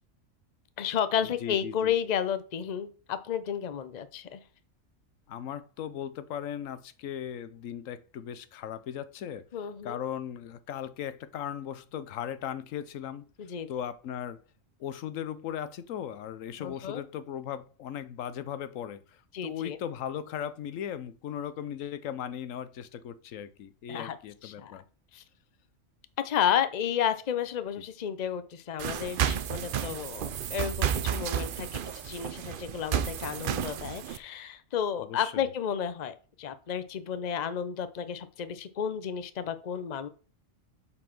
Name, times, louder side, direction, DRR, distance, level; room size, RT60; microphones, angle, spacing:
voice 1, 0.8-4.4 9.5-10.0 13.4-13.7 16.6-17.0 19.3-19.8 23.9-24.2 24.4-24.8 25.1-25.2 26.2-40.1, left 8 dB, 40° left, 0.7 m, -32 dB
voice 2, 1.4-1.9 5.3-9.5 9.8-13.3 13.7-14.4 14.8-24.8 35.0-35.5, left 9 dB, 90° left, 1.1 m, -37 dB
sound 1, 28.8-34.2, right 9 dB, 55° right, 0.6 m, -32 dB
7.7 x 4.2 x 5.9 m
omnidirectional pair, 1.3 m